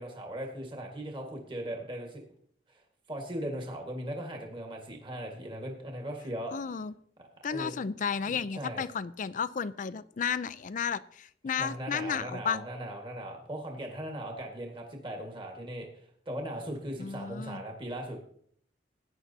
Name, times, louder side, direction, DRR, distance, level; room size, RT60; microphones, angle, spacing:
voice 1, 0.0-2.2 3.1-6.5 7.5-7.8 8.3-8.8 11.6-15.9 16.3-18.2, right 1 dB, 30° right, 2 dB, 1.6 m, -38 dB
voice 2, 6.5-6.9 7.4-12.6 17.0-17.6, left 6 dB, 45° left, 15 dB, 0.4 m, -33 dB
16.0 x 9.7 x 2.7 m, 0.62 s
head